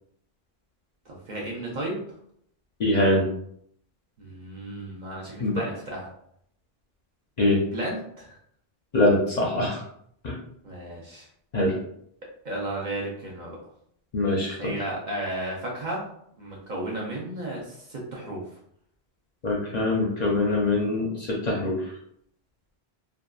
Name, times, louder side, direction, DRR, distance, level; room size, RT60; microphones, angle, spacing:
voice 1, 1.1-2.0 4.2-6.1 7.7-8.4 10.6-11.3 12.4-13.6 14.6-16.0 16.4-18.4, right 1 dB, 50° right, -3 dB, 0.7 m, -33 dB
voice 2, 2.8-3.2 5.4-5.6 7.4-7.6 8.9-9.8 10.2-10.3 11.5-11.8 14.1-14.7 19.4-21.8, left 2 dB, 50° left, -3 dB, 0.6 m, -23 dB
2.8 x 2.3 x 2.3 m, 0.69 s
omnidirectional pair, 1.1 m